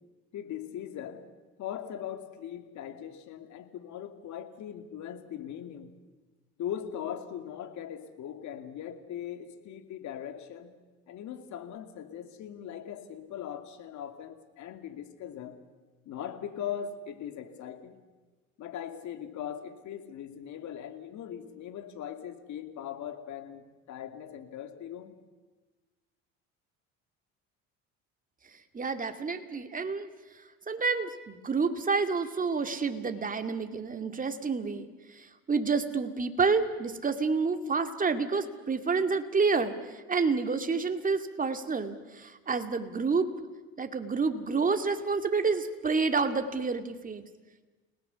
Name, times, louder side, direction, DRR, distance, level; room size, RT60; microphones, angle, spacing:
voice 1, 0.3-1.2 1.6-5.9 6.6-10.7 11.1-15.6 16.1-18.0 18.6-25.1, left 9 dB, 60° left, 8 dB, 2.5 m, -40 dB
voice 2, 28.7-30.1 30.4-43.3 43.8-47.2, right 4 dB, 25° right, 7 dB, 2.3 m, -29 dB
30.0 x 18.5 x 7.0 m, 1.2 s
supercardioid pair, 90°, 32 cm